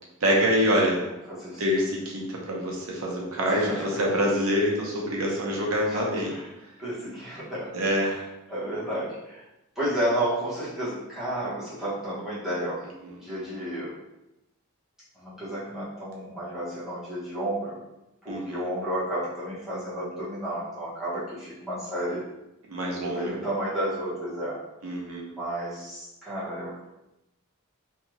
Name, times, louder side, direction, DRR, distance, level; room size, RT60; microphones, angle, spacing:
voice 1, 0.2-1.0 1.6-6.3 7.7-8.1 13.0-13.2 18.3-18.6 22.7-23.3 24.8-25.3, equal, 85° right, -2 dB, 0.7 m, -25 dB
voice 2, 1.3-1.6 3.5-4.0 5.9-6.5 6.8-7.7 8.0-8.2 8.5-9.4 9.8-12.8 13.2-14.0 15.2-17.8 18.2-22.3 23.0-24.6 25.3-26.8, right 1 dB, ahead, -10 dB, 0.9 m, -32 dB
2.7 x 2.3 x 2.9 m, 0.91 s
head